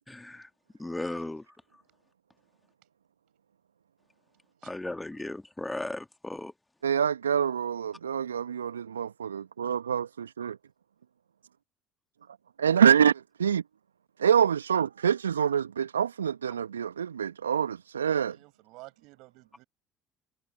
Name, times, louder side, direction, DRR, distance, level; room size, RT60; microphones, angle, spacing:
voice 1, 0.1-0.5 0.8-1.4 4.6-6.5, left 2 dB, 10° left, 2.3 m, -36 dB
voice 2, 6.8-10.6 12.6-13.6 14.2-18.4, right 8 dB, 80° right, 1.6 m, -26 dB
voice 3, 18.2-19.6, right 22 dB, 60° right, 8.0 m, -51 dB
figure-of-eight pair, 55°, 0 cm